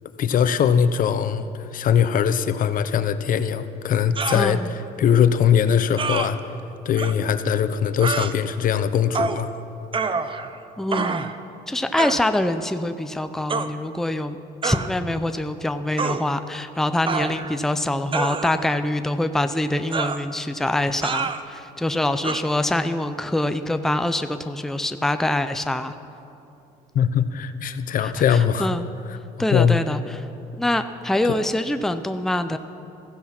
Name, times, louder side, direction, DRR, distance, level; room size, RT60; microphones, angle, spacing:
voice 1, 0.2-4.6 5.0-6.4 6.8-9.5 26.9-28.7 29.5-29.8 31.3-31.4, left 8 dB, 55° left, 11 dB, 0.9 m, -21 dB
sound 1, 4.2-4.4 6.0-6.3 7.0-7.1 8.0-8.3 9.1-9.4 9.9-10.6 10.9-11.4 12.0-12.2 13.5-13.7 14.6-14.9 16.0-16.2 17.1-17.6 18.1-18.7 19.9-20.2 21.0-21.4 22.2-22.4, right 5 dB, 30° right, 0.8 m, -26 dB
voice 2, 4.3-4.7 10.8-11.3 11.7-14.4 14.6-25.9 28.0-28.8 29.4-30.3 30.6-32.6, left 1 dB, ahead, 9 dB, 0.6 m, -25 dB
15.5 x 15.0 x 5.9 m, 2.7 s
cardioid pair, 110°, 17 cm